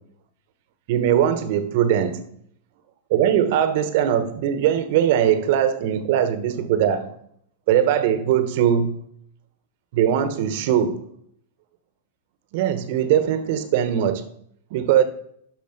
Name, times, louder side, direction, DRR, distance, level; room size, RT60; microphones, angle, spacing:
voice 1, 0.9-2.2 3.1-7.1 7.7-9.0 9.9-11.0 12.5-14.2 14.7-15.0, right 9 dB, 55° right, 1.2 m, -20 dB
13.0 x 5.1 x 5.2 m
hypercardioid pair, 105°, 0 cm